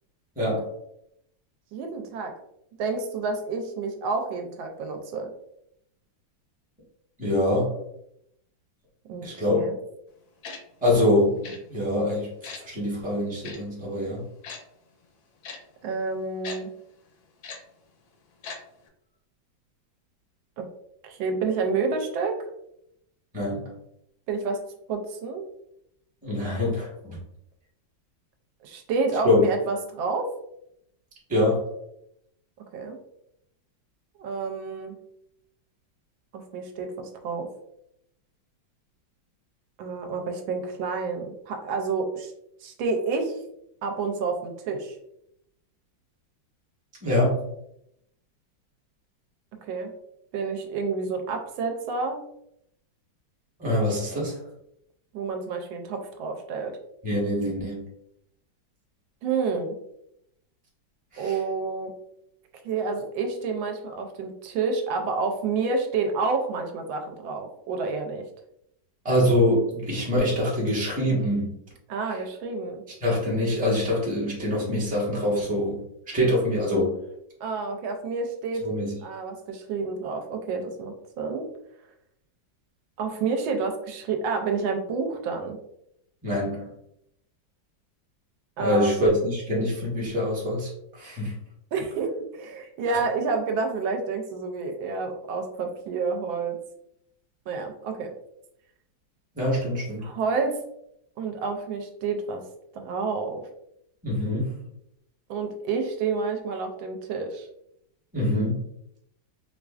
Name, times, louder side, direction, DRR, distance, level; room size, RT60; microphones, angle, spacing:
voice 1, 0.4-0.7 7.2-7.7 9.2-9.6 10.8-11.4 11.7-12.3 12.6-14.2 23.3-23.6 26.2-27.2 29.2-29.5 31.3-31.6 47.0-47.4 53.6-54.4 57.0-57.8 61.1-61.3 69.0-71.6 73.0-76.9 78.6-79.0 86.2-86.7 88.6-91.3 99.3-100.0 104.0-104.5 108.1-108.6, left 1 dB, 5° right, -5 dB, 0.7 m, -24 dB
voice 2, 1.7-2.3 2.8-5.3 9.1-9.2 9.5-9.8 15.8-16.7 20.6-20.7 21.0-22.4 24.3-24.6 24.9-25.4 28.6-30.3 32.7-33.0 34.2-35.0 36.3-37.5 39.8-42.3 42.6-43.4 43.8-45.0 49.7-49.9 50.3-52.2 55.1-56.8 59.2-59.7 61.2-61.9 62.6-68.2 71.9-72.8 77.4-78.7 79.0-81.5 83.0-85.6 88.6-89.2 91.7-96.6 97.5-98.1 100.0-100.6 101.2-102.4 102.7-103.4 105.3-107.5, right 4 dB, 85° right, 4 dB, 1.4 m, -29 dB
Tick-tock, 10.4-10.6 11.4-11.6 12.4-12.6 13.4-13.6 14.4-14.6 15.4-15.6 16.4-16.6 17.4-17.6 18.4-18.6 18.9-19.0, left 5 dB, 70° left, 1.0 m, -38 dB
4.5 x 2.4 x 2.3 m, 0.78 s
omnidirectional pair, 2.1 m